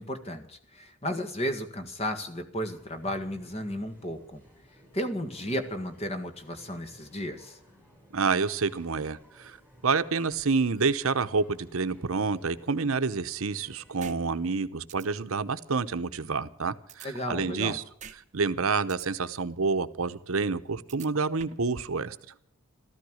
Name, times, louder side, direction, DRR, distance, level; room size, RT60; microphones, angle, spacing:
voice 1, 0.0-4.4 4.9-7.6 17.0-17.8, equal, 30° left, 7 dB, 1.6 m, -34 dB
sound 1, 2.7-14.4, equal, 5° left, 6.6 m, -57 dB
voice 2, 8.1-9.6 9.8-17.8 18.3-22.2, right 4 dB, 70° right, 11 dB, 0.9 m, -28 dB
sound 2, 14.0-14.2 14.5-14.6 14.9-15.0 16.9-17.7 18.0-18.2 18.5-19.1 20.9-21.7, right 7 dB, 35° right, 0.9 m, -45 dB
14.0 x 13.5 x 6.3 m, 0.69 s
head